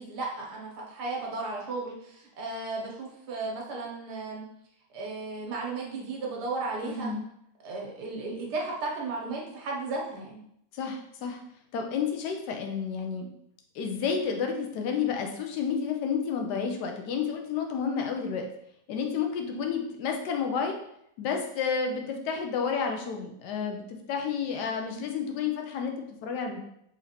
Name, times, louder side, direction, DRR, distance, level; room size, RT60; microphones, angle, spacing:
voice 1, 0.0-4.4 4.9-7.1 7.6-10.4 19.5-19.6, right 3 dB, 80° right, -1 dB, 1.4 m, -35 dB
voice 2, 6.8-7.2 10.7-11.4 11.7-13.3 13.7-18.4 18.9-20.8 21.2-26.6, left 6 dB, 90° left, 3 dB, 1.2 m, -30 dB
3.9 x 3.1 x 2.8 m, 0.76 s
omnidirectional pair, 1.7 m